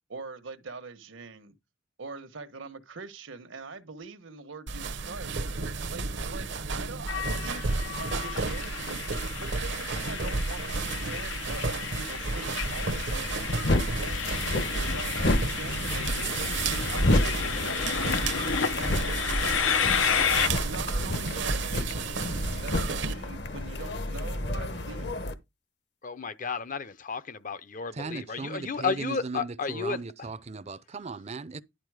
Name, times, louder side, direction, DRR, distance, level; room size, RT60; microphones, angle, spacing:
voice 1, 0.1-1.5 2.0-5.4 5.9-9.0 9.4-13.4 14.0-18.1 18.8-19.7 20.3-21.9 22.6-25.2, right 4 dB, 80° right, 1.2 m, -43 dB
sound 1, 4.7-23.1, right 4 dB, 65° right, 0.8 m, -32 dB
Train, 7.1-20.5, left 7 dB, 85° left, 0.8 m, -31 dB
sound 2, 12.7-25.3, left 1 dB, 60° left, 1.1 m, -31 dB
voice 2, 26.0-30.0, left 5 dB, 40° left, 0.6 m, -32 dB
voice 3, 27.9-31.6, right 3 dB, 35° right, 0.5 m, -37 dB
11.0 x 4.2 x 4.8 m
head